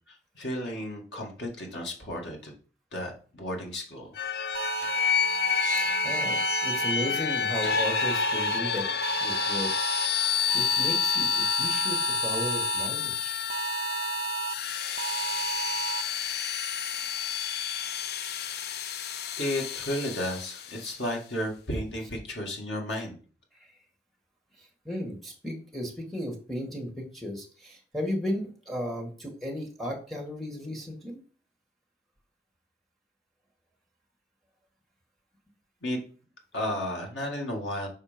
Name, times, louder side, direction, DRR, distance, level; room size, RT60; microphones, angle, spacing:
voice 1, 0.1-2.5 2.9-4.1 19.4-23.2 35.8-36.0 36.5-37.9, left 1 dB, 85° left, 1 dB, 2.1 m, -33 dB
sound 1, 4.2-20.9, left 7 dB, 60° left, 0.5 m, -29 dB
sound 2, 4.5-6.9 7.5-8.6 9.0-10.1 10.5-12.9 13.5-14.5 15.0-16.0, right 8 dB, 55° right, 0.5 m, -33 dB
voice 2, 5.7-8.9 9.2-9.9 10.5-13.4 24.9-31.2, equal, ahead, -1 dB, 1.8 m, -35 dB
6.6 x 4.4 x 5.2 m, 0.39 s
head